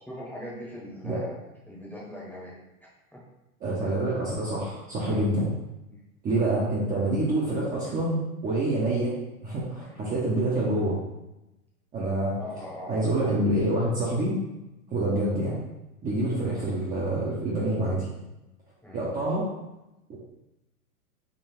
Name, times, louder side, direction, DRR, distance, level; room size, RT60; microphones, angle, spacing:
voice 1, 0.1-1.4 1.7-2.6 3.1-3.2 5.9-6.0 9.8-10.0 12.4-13.3 18.8-19.0, left 1 dB, 5° left, -6 dB, 1.0 m, -40 dB
voice 2, 3.6-5.5 6.2-9.2 9.4-11.0 11.9-12.4 12.9-14.4 14.9-15.6 16.0-18.1 18.9-19.5 20.1-20.2, right 1 dB, 20° right, -7 dB, 0.7 m, -26 dB
3.8 x 2.3 x 4.3 m, 0.95 s
hypercardioid pair, 125°, 45 cm